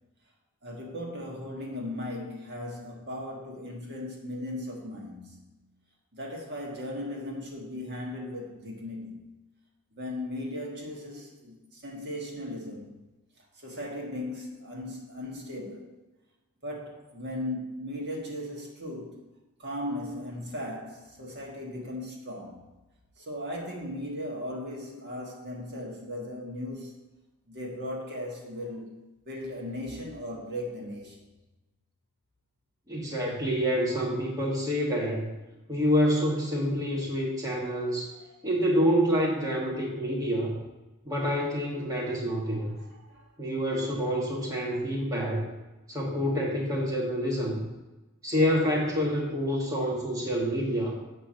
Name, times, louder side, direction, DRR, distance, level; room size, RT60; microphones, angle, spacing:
voice 1, 0.6-5.6 6.1-9.2 10.0-13.0 13.6-15.9 16.6-19.2 19.6-22.6 23.2-26.9 27.5-29.0 29.3-31.2 42.8-43.2, left 1 dB, 50° right, -1 dB, 1.7 m, -37 dB
voice 2, 32.9-35.3 35.7-38.1 38.4-40.6 41.0-42.8 43.4-45.4 45.9-47.7 48.2-50.9, equal, 15° right, -4 dB, 1.5 m, -27 dB
7.9 x 4.4 x 6.3 m, 1.1 s
head